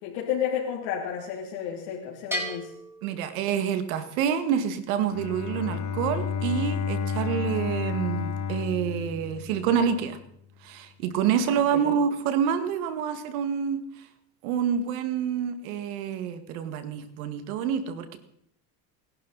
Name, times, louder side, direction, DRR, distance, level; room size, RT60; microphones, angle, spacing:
voice 1, 0.0-2.7 11.5-12.0, left 8 dB, 75° left, -3 dB, 3.2 m, -32 dB
Bell, 2.3-4.0, equal, 5° right, 4.6 m, -36 dB
voice 2, 3.0-10.2 10.6-14.1 14.4-18.2, right 8 dB, 85° right, 9 dB, 2.1 m, -27 dB
Bowed string instrument, 5.0-10.0, left 6 dB, 45° left, 1.5 m, -31 dB
28.5 x 11.5 x 4.2 m, 0.72 s
supercardioid pair, 110°, 41 cm